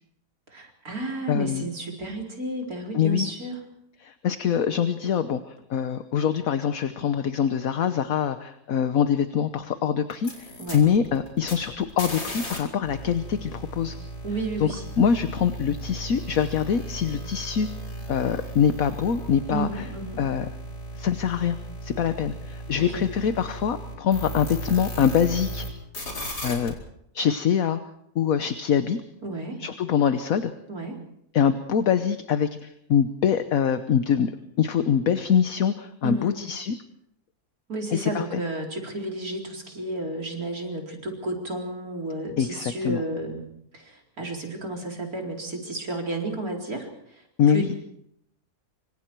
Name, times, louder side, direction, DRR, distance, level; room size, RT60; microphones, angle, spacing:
voice 1, 0.5-3.6 10.6-10.8 14.2-14.8 19.5-20.2 22.7-23.0 29.2-29.6 30.7-31.0 36.0-36.4 37.7-43.4 43.7-47.2 47.5-47.8, right 2 dB, 65° right, 1 dB, 4.8 m, -32 dB
voice 2, 1.3-1.7 2.9-3.3 4.0-14.0 14.6-17.7 18.1-19.9 20.2-20.5 20.9-21.6 21.8-25.6 26.4-26.8 27.1-27.8 28.1-29.0 29.6-30.5 31.3-34.3 34.6-36.8 37.9-38.4 42.4-43.0 47.4-47.7, left 8 dB, 60° left, 10 dB, 1.3 m, -24 dB
sound 1, 10.1-12.6 12.8-25.7 25.9-26.7, right 1 dB, 90° left, 5.2 m, -36 dB
26.0 x 25.0 x 4.6 m, 0.74 s
omnidirectional pair, 1.7 m